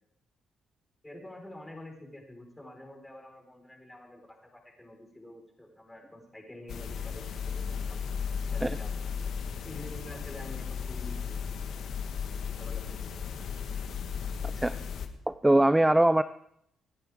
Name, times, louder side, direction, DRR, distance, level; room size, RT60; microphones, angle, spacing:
voice 1, 1.0-7.6 7.9-8.0 8.5-9.0 9.6-11.4 12.6-13.3, left 1 dB, 10° left, 1 dB, 4.4 m, -47 dB
sound 1, 6.7-15.1, left 6 dB, 70° left, 1.4 m, -35 dB
voice 2, 15.3-16.2, right 1 dB, 10° right, 13 dB, 0.4 m, -22 dB
26.0 x 9.8 x 3.6 m, 0.73 s
cardioid pair, 90°, 0 cm